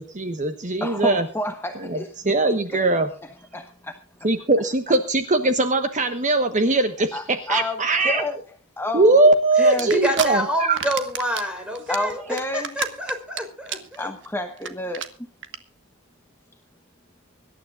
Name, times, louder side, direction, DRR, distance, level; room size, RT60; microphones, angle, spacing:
voice 1, 0.0-1.2 1.8-2.0 2.2-3.1 4.2-8.2 8.9-10.8, right 2 dB, 35° right, 1.2 m, -20 dB
voice 2, 0.8-2.2 2.7-2.8 3.5-3.6 7.1-8.4 8.8-9.2 9.6-9.9 11.9-12.8 14.0-15.1, left 1 dB, 10° left, 1.0 m, -29 dB
voice 3, 9.6-14.1, equal, 5° right, 4.2 m, -27 dB
sound 1, 9.8-10.3 10.6-11.4 11.7-13.4 13.7-14.0 14.2-14.3 14.6-14.7 14.9-15.1 15.4-15.6, right 8 dB, 55° right, 1.5 m, -29 dB
25.0 x 12.5 x 2.4 m
head